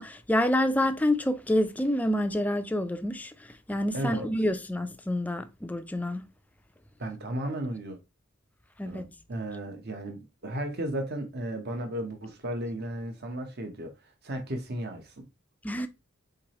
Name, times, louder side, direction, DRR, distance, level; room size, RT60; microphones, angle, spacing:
voice 1, 0.0-3.3 3.7-6.2 8.8-9.0 15.6-15.9, left 1 dB, 10° left, 0.4 m, -27 dB
voice 2, 3.9-4.3 7.0-8.0 8.8-13.9 14.2-15.2, right 1 dB, 55° right, 0.9 m, -34 dB
4.8 x 3.8 x 2.9 m
head